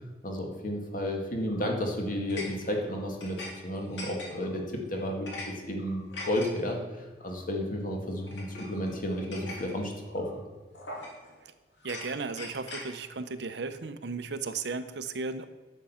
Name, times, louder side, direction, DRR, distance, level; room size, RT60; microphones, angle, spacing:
voice 1, 0.2-10.4, left 1 dB, 50° left, 2 dB, 2.0 m, -32 dB
sound 1, 1.4-1.8 2.3-3.5 3.8-4.5 4.9-5.5 5.8-6.5 7.2-7.4 8.3-9.7 10.2-10.4 10.7-11.3 11.8-12.9, left 2 dB, 80° left, 2.9 m, -42 dB
voice 2, 11.8-15.5, right 4 dB, 65° right, 11 dB, 0.7 m, -35 dB
11.0 x 7.6 x 5.7 m, 1.4 s
head